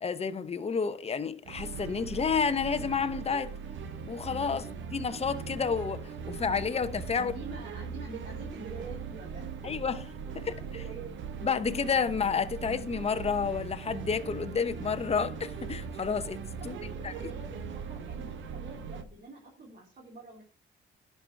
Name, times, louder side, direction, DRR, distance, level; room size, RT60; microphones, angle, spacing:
voice 1, 0.0-3.5 4.1-4.6 4.9-7.3 9.6-10.0 10.5-10.6 11.4-16.8 17.0-17.3, left 6 dB, 30° left, 0.9 m, -30 dB
sound 1, 1.4-19.0, right 6 dB, 70° right, 1.2 m, -40 dB
voice 2, 4.4-4.8 7.2-9.7 10.4-11.2 16.6-20.4, right 3 dB, 45° right, 3.6 m, -46 dB
11.0 x 5.7 x 4.6 m
cardioid pair, 90°, 20 cm